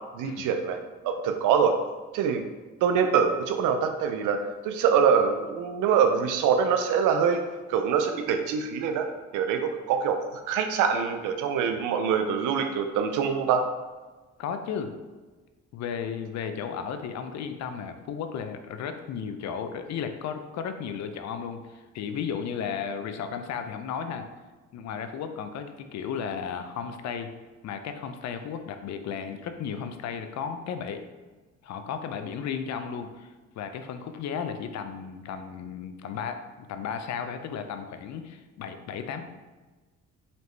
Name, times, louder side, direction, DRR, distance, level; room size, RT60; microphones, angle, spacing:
voice 1, 0.1-0.8 1.0-1.8 2.1-2.4 2.8-4.4 4.6-7.4 7.7-9.1 9.3-10.2 10.5-13.6, right 7 dB, 85° right, 6 dB, 0.5 m, -24 dB
voice 2, 14.4-14.9 15.7-24.2 24.7-27.3 27.6-31.0 31.6-39.2, left 7 dB, 65° left, 8 dB, 0.5 m, -34 dB
4.2 x 3.2 x 3.0 m, 1.3 s
cardioid pair, 90°, 30 cm